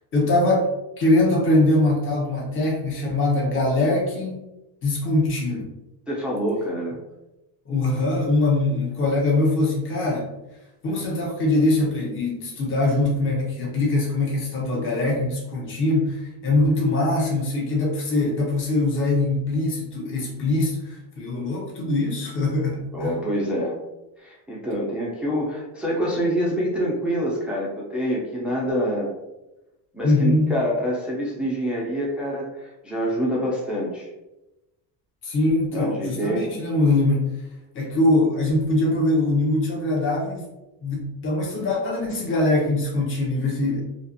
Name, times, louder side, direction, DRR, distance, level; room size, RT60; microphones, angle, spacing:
voice 1, 0.1-0.7 1.0-4.4 4.8-5.7 7.7-10.3 10.8-23.1 30.0-30.5 35.2-37.3 37.7-40.4 40.8-43.8, left 2 dB, 25° left, -3 dB, 0.8 m, -22 dB
voice 2, 6.1-7.0 22.9-23.8 24.2-29.1 29.9-34.1 35.7-36.5, equal, ahead, -4 dB, 0.4 m, -26 dB
2.5 x 2.5 x 2.5 m, 0.97 s
cardioid pair, 115°, 49 cm